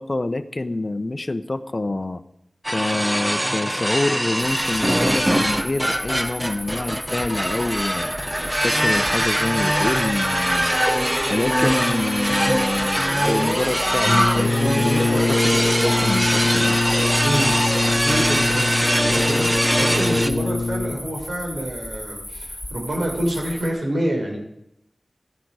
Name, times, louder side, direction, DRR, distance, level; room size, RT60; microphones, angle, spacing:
voice 1, 0.0-2.2 2.7-8.2 8.6-10.8 11.3-16.8, left 2 dB, 45° left, 11 dB, 0.9 m, -26 dB
sound 1, 2.6-20.3, equal, 15° right, 1.1 m, -22 dB
sound 2, 4.4-23.7, left 1 dB, 5° left, 4.2 m, -35 dB
Brass instrument, 14.0-21.2, left 3 dB, 75° left, 0.6 m, -23 dB
voice 2, 18.0-24.4, right 1 dB, 85° right, -1 dB, 5.5 m, -27 dB
16.0 x 12.5 x 4.9 m, 0.81 s
wide cardioid pair, 55°, 0 cm